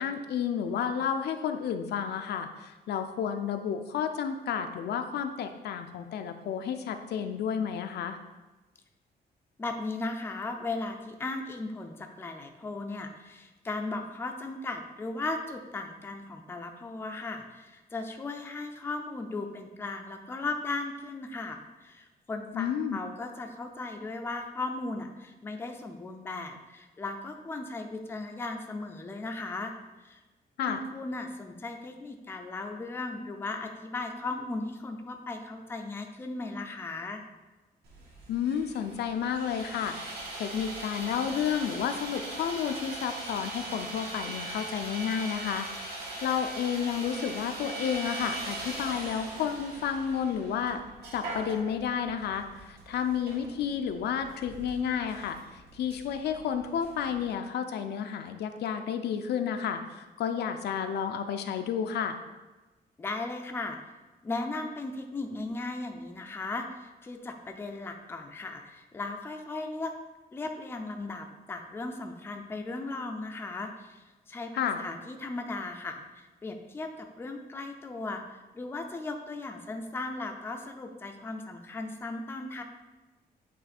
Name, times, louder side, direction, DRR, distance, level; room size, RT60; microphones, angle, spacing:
voice 1, 0.0-8.2 22.5-23.0 30.6-30.8 38.3-40.0 40.3-50.8 51.1-62.2 74.6-74.8, left 8 dB, 75° left, 7 dB, 0.5 m, -31 dB
voice 2, 9.6-29.7 30.0-30.2 30.6-37.2 63.0-63.8 64.2-69.9 70.3-82.6, left 3 dB, 15° left, 4 dB, 0.4 m, -37 dB
Sawing, 37.8-57.2, right 2 dB, 70° right, 1.5 m, -41 dB
8.4 x 3.1 x 4.2 m, 1.2 s
wide cardioid pair, 175°, 17 cm